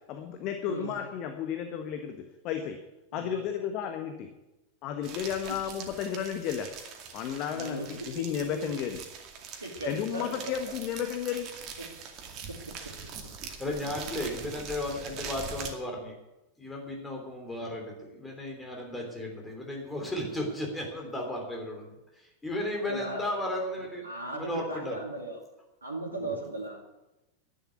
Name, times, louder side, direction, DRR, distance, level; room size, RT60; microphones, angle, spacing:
voice 1, 0.1-2.8 3.1-4.3 4.8-6.7 7.1-9.0 9.8-11.5, left 8 dB, 40° left, 6 dB, 1.3 m, -33 dB
sound 1, 5.0-15.7, right 6 dB, 35° right, 2.3 m, -43 dB
voice 2, 7.5-7.9 8.4-8.7 9.6-10.4 11.8-11.9 12.5-12.7 22.9-23.2 24.0-25.4 25.8-26.9, right 1 dB, 80° right, -1 dB, 2.3 m, -37 dB
voice 3, 13.6-16.1 16.6-21.9 22.4-24.0 24.3-25.0 26.2-26.3, left 1 dB, 10° left, 1 dB, 3.3 m, -34 dB
11.0 x 9.7 x 9.3 m, 0.99 s
figure-of-eight pair, 90°, 0 cm